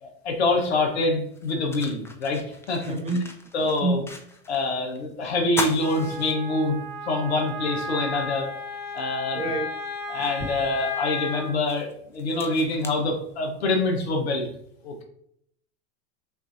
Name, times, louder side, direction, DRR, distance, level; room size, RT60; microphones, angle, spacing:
voice 1, 0.0-3.0 3.5-4.0 4.5-6.8 7.0-8.5 8.9-9.4 10.1-14.5 14.8-15.0, left 2 dB, 80° left, 3 dB, 1.2 m, -25 dB
sound 1, 1.3-4.6 4.9-5.0 5.4-6.9 7.4-7.5 8.9-9.0 9.6-13.8, left 2 dB, 10° left, 0.5 m, -37 dB
voice 2, 2.8-3.4 3.8-4.1 9.4-9.7, right 3 dB, 20° right, 3 dB, 0.8 m, -27 dB
Wind instrument woodwind instrument, 5.8-11.5, left 3 dB, 60° left, 1.6 m, -34 dB
5.8 x 2.7 x 2.7 m, 0.69 s
hypercardioid pair, 90°, 32 cm